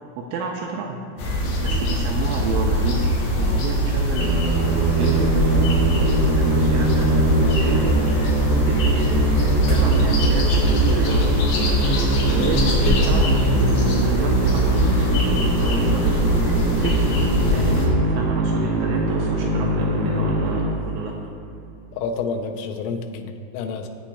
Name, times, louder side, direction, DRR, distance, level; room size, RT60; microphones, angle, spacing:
voice 1, 0.2-1.0 1.6-3.0 3.4-8.8 9.7-11.4 12.3-16.2 16.8-21.2, right 4 dB, 85° right, 0 dB, 2.8 m, -30 dB
sound 1, 1.2-17.9, equal, 60° left, 3.1 m, -21 dB
Musical instrument, 4.2-21.3, right 1 dB, 65° right, 3.2 m, -23 dB
voice 2, 21.9-23.9, left 4 dB, 80° left, 4 dB, 2.9 m, -29 dB
17.0 x 8.2 x 2.3 m, 2.5 s
omnidirectional pair, 5.9 m